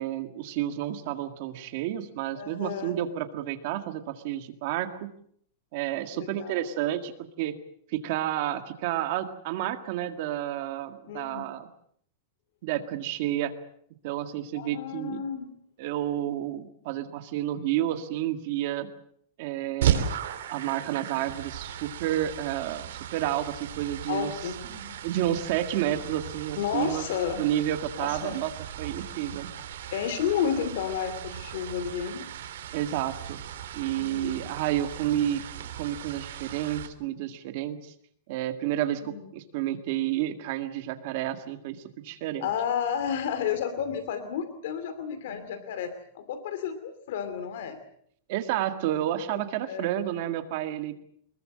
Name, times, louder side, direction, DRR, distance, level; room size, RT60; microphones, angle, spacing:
voice 1, 0.0-5.1 5.7-7.5 7.9-11.7 12.6-13.5 14.0-15.2 15.8-18.9 19.4-20.1 20.5-24.3 24.7-27.0 27.4-28.5 28.8-29.5 32.7-33.4 33.7-35.4 35.7-37.9 38.3-42.5 48.3-51.0, right 12 dB, 40° right, 8 dB, 1.9 m, -30 dB
voice 2, 2.3-2.9 6.1-6.7 11.1-11.5 14.5-15.5 24.1-25.1 26.6-27.4 28.0-28.4 29.9-32.3 34.0-34.4 39.0-39.3 42.4-47.8 49.3-49.9, left 8 dB, 60° left, 10 dB, 2.6 m, -32 dB
sound 1, 19.8-36.9, right 9 dB, 75° right, 3.0 m, -36 dB
24.5 x 21.5 x 7.6 m, 0.65 s
supercardioid pair, 175°, 0 cm